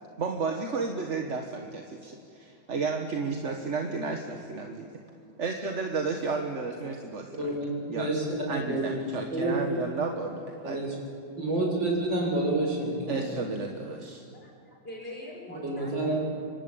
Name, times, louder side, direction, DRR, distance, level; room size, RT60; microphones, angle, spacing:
voice 1, 0.2-4.9 5.4-7.5 7.9-8.1 8.5-10.9 13.1-14.2, right 4 dB, 40° right, 3 dB, 1.5 m, -32 dB
voice 2, 7.4-8.2 8.7-8.8 9.3-9.6 10.6-10.9 11.4-13.4 15.5-16.1, right 2 dB, 60° right, -1 dB, 7.4 m, -29 dB
voice 3, 14.3-16.1, left 1 dB, 25° left, -1 dB, 5.5 m, -43 dB
27.0 x 24.5 x 8.7 m, 2.5 s
omnidirectional pair, 2.3 m